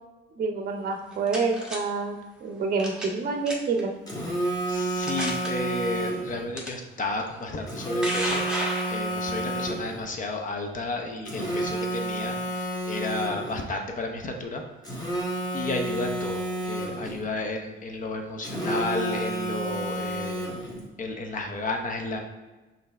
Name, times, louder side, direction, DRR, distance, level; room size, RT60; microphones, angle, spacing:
voice 1, 0.4-3.9, right 4 dB, 50° right, 5 dB, 0.6 m, -28 dB
sound 1, 0.9-1.8 2.8-3.2 3.5-3.8 4.4-4.5 5.0-5.5 6.6-6.7 7.6-9.4, equal, 5° right, 1.1 m, -32 dB
Telephone, 4.1-6.4 7.7-10.0 11.3-13.6 14.8-17.2 18.4-20.8, right 1 dB, 20° left, 1.3 m, -30 dB
voice 2, 4.7-14.6 15.0-15.1 15.5-20.4 21.0-22.2, left 2 dB, 40° left, 3 dB, 0.8 m, -32 dB
5.4 x 2.7 x 3.4 m, 1.2 s
cardioid pair, 90°, 20 cm